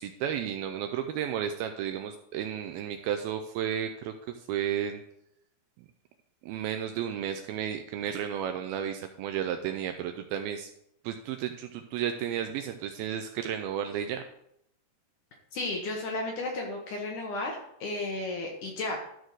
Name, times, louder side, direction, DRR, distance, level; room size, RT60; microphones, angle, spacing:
voice 1, 0.0-5.0 6.4-10.7 11.0-14.2, right 9 dB, 80° right, 7 dB, 2.2 m, -33 dB
voice 2, 15.5-19.0, left 2 dB, 65° left, 0 dB, 2.1 m, -33 dB
13.0 x 4.4 x 4.7 m, 0.75 s
omnidirectional pair, 4.7 m